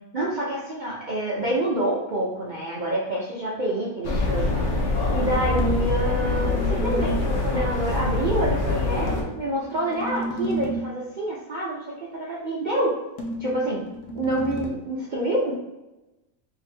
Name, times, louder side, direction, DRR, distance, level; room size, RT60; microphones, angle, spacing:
voice 1, 0.1-4.6 5.1-13.0 13.4-13.8 14.1-15.5, right 1 dB, 70° right, -5 dB, 0.4 m, -27 dB
sound 1, 4.0-9.2, left 3 dB, 55° left, 1.0 m, -24 dB
sound 2, 5.6-7.4 9.1-11.0 13.2-14.7, right 1 dB, 75° left, 1.2 m, -32 dB
3.0 x 2.8 x 4.1 m, 1.0 s
omnidirectional pair, 1.7 m